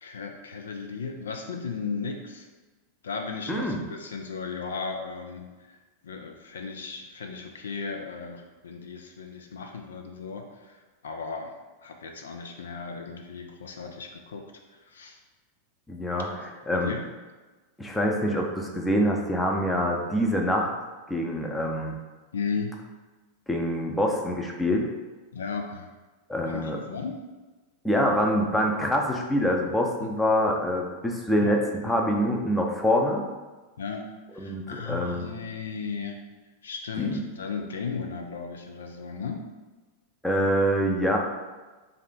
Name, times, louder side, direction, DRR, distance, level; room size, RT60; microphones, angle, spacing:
voice 1, 0.0-2.5 3.0-5.8 6.0-14.4 14.7-15.2 16.7-17.0 22.3-22.8 25.3-25.9 26.5-27.2 30.0-30.1 31.4-31.6 33.8-36.2 36.6-39.5, left 5 dB, 65° left, 3 dB, 0.4 m, -35 dB
voice 2, 3.5-3.8 15.9-16.9 17.8-20.7 21.1-22.0 23.5-24.9 26.3-26.8 27.8-33.2 34.4-35.3 37.0-37.2 40.2-41.2, equal, 5° left, 1 dB, 0.6 m, -25 dB
3.3 x 3.2 x 3.8 m, 1.2 s
figure-of-eight pair, 90°, 0 cm